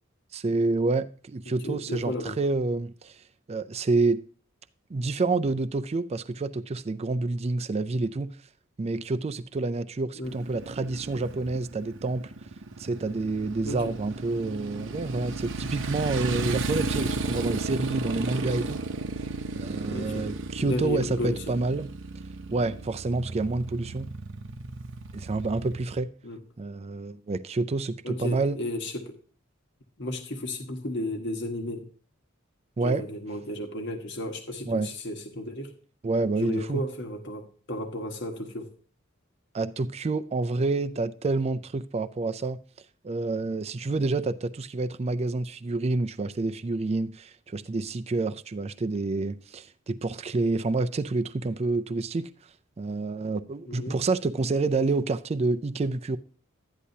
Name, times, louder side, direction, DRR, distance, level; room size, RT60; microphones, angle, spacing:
voice 1, 0.3-3.1 3.5-4.2 4.9-8.3 8.8-12.2 12.8-18.8 19.5-21.9 22.5-24.1 25.1-26.1 26.6-28.6 32.8-33.0 34.7-34.9 36.0-36.8 39.5-42.6 43.0-52.3 52.8-56.2, right 3 dB, 30° right, 0.4 m, -28 dB
voice 2, 1.6-2.4 10.2-10.3 13.6-13.9 19.9-20.3 20.6-21.5 26.2-26.4 28.0-29.2 30.0-31.9 32.8-35.7 36.4-38.7 53.7-53.9, left 1 dB, 60° left, 1.4 m, -33 dB
Motorcycle, 10.2-26.0, right 3 dB, 65° right, 0.7 m, -34 dB
12.5 x 10.0 x 2.8 m
head